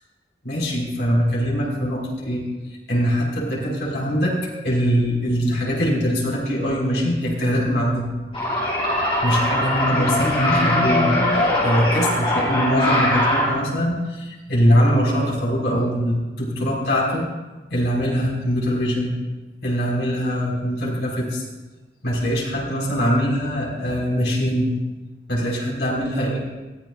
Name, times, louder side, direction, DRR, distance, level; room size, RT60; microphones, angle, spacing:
voice 1, 0.4-2.4 2.9-4.3 4.6-8.1 9.2-17.3 17.7-19.1 19.6-21.4 22.0-24.7 25.3-26.4, equal, 70° left, -4 dB, 5.6 m, -22 dB
sound 1, 8.3-13.5, left 1 dB, 30° left, 5.6 m, -21 dB
22.5 x 15.0 x 2.6 m, 1.2 s
head